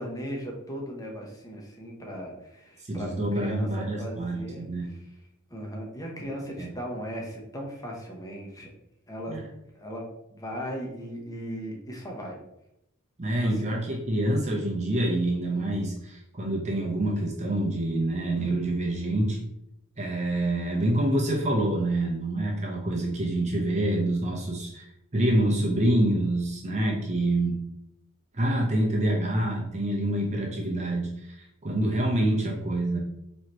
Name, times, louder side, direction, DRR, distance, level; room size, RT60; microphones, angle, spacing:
voice 1, 0.0-3.7 4.0-4.7 5.5-8.7 9.1-9.4 9.7-10.0 10.3-12.4 13.3-13.5, equal, 15° left, -1 dB, 0.9 m, -37 dB
voice 2, 2.8-4.9 6.6-6.7 9.3-9.5 13.2-19.4 20.0-24.9 25.1-27.6 28.3-33.0, right 1 dB, 30° right, -2 dB, 0.7 m, -26 dB
4.7 x 3.2 x 2.9 m, 0.81 s
head